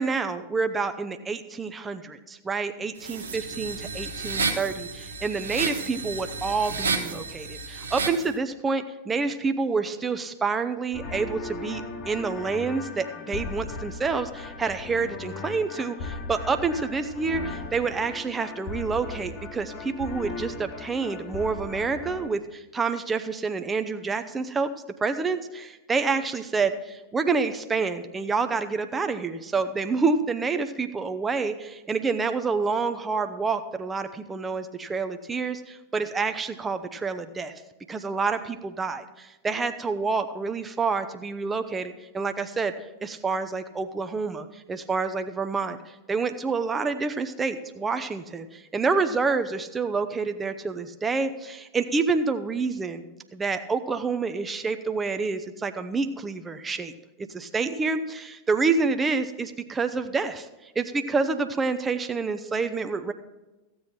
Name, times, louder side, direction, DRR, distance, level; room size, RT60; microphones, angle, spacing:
voice 1, 0.0-24.7 25.0-37.5 37.9-42.7 43.0-45.8 46.1-53.0 53.3-56.9 57.3-63.1, right 4 dB, 15° right, 8 dB, 0.6 m, -28 dB
sound 1, 3.0-8.3, right 4 dB, 70° right, 1.0 m, -31 dB
sound 2, 10.9-22.3, left 3 dB, 40° left, 1.3 m, -37 dB
14.5 x 7.8 x 4.3 m, 1.1 s
figure-of-eight pair, 90°, 0 cm